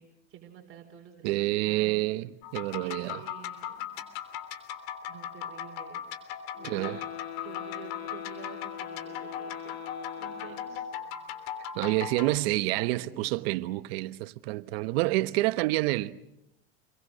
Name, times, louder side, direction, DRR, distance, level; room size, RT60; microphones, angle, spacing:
voice 1, 0.0-2.1 2.8-3.9 4.3-4.5 5.1-6.1 6.6-9.7 10.2-10.9 11.8-12.1 12.5-13.4, right 9 dB, 40° right, 4.1 m, -49 dB
voice 2, 1.2-3.2 6.6-7.0 11.7-16.1, right 19 dB, 70° right, 1.2 m, -28 dB
sound 1, 2.4-12.4, left 9 dB, 65° left, 3.3 m, -38 dB
sound 2, 6.5-11.1, left 12 dB, 80° left, 3.0 m, -42 dB
29.0 x 22.5 x 6.5 m
supercardioid pair, 100°, 31 cm